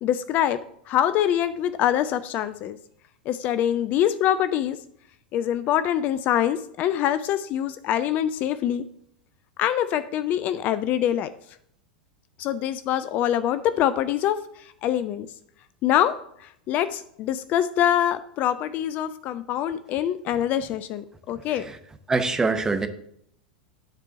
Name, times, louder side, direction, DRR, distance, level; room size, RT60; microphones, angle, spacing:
voice 1, 0.0-2.8 3.3-4.8 5.3-8.8 9.6-11.3 12.4-15.3 15.8-21.7, left 11 dB, 35° left, 0.4 m, -24 dB
voice 2, 22.1-22.9, right 3 dB, 10° right, 0.8 m, -24 dB
9.6 x 4.4 x 6.0 m
figure-of-eight pair, 90°, 5 cm